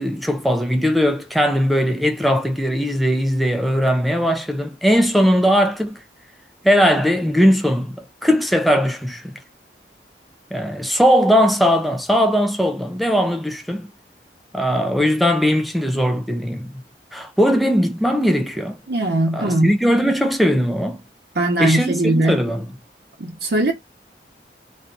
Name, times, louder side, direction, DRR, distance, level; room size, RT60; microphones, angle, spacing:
voice 1, 0.0-6.0 6.6-9.3 10.5-13.9 14.5-16.7 17.1-18.8 19.3-21.0 21.6-22.7, equal, ahead, 0.3 m, -19 dB
voice 2, 18.9-19.7 21.3-22.4 23.2-23.7, right 1 dB, 65° right, 0.7 m, -20 dB
2.6 x 2.3 x 3.7 m
head